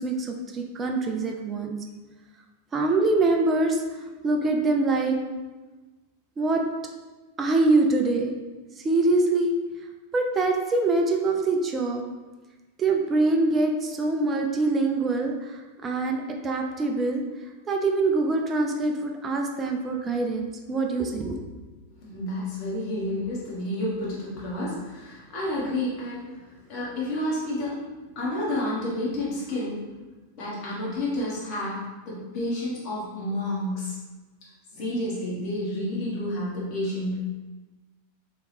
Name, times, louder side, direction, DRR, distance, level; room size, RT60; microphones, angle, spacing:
voice 1, 0.0-1.8 2.7-5.2 6.4-6.6 7.4-8.3 8.8-9.5 10.1-12.0 12.8-17.2 17.7-21.4, right 3 dB, 20° right, 2 dB, 0.4 m, -24 dB
voice 2, 22.0-26.4 26.7-27.8 28.1-29.8 30.3-33.9 34.7-37.3, left 1 dB, 40° left, -6 dB, 1.3 m, -30 dB
3.1 x 2.9 x 3.3 m, 1.2 s
figure-of-eight pair, 90°, 0 cm